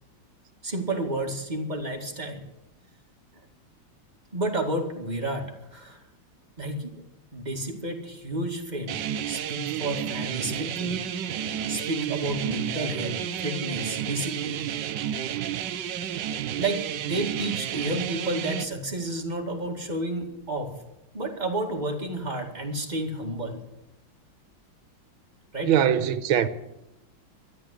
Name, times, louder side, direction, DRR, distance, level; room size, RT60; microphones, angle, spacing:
voice 1, 0.6-2.4 4.3-6.0 6.6-7.0 7.3-9.0 9.3-11.0 11.7-14.6 15.6-15.7 16.6-20.8 21.1-23.6 25.5-25.8, right 1 dB, 20° right, 2.2 m, -31 dB
sound 1, 8.9-18.7, right 10 dB, 70° right, 1.3 m, -31 dB
voice 2, 25.6-26.5, right 9 dB, 85° right, 1.7 m, -21 dB
13.5 x 11.0 x 8.3 m
omnidirectional pair, 2.2 m